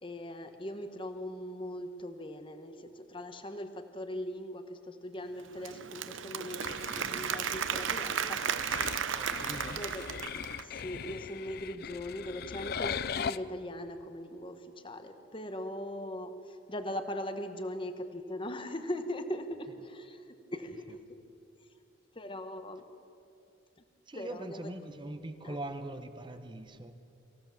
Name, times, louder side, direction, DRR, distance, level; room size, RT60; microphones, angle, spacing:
voice 1, 0.0-8.4 9.7-10.1 10.6-20.2 20.5-20.8 22.1-22.8 24.1-24.7 25.4-25.6, left 1 dB, 25° left, 8 dB, 1.1 m, -40 dB
Applause / Crowd, 5.4-10.8, right 7 dB, 75° right, 0.9 m, -34 dB
sound 1, 6.6-13.4, left 7 dB, 50° left, 0.4 m, -40 dB
voice 2, 9.1-9.8 20.9-21.0 24.1-26.9, right 1 dB, 25° right, 9 dB, 0.9 m, -42 dB
24.5 x 15.5 x 7.4 m, 2.6 s
head